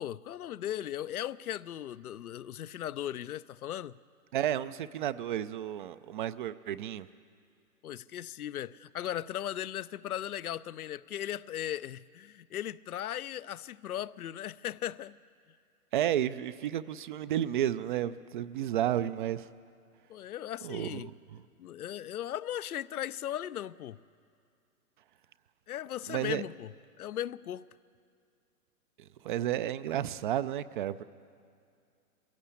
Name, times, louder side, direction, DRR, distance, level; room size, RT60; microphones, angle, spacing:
voice 1, 0.0-4.0 7.8-15.2 20.1-21.1 21.6-24.0 25.7-26.7 27.0-27.7, left 11 dB, 75° left, 15 dB, 0.7 m, -37 dB
voice 2, 4.3-7.1 15.9-19.5 20.6-21.4 26.1-26.4 29.2-31.0, right 11 dB, 35° right, 14 dB, 0.4 m, -32 dB
22.0 x 16.0 x 8.4 m, 2.4 s
hypercardioid pair, 120°, 45 cm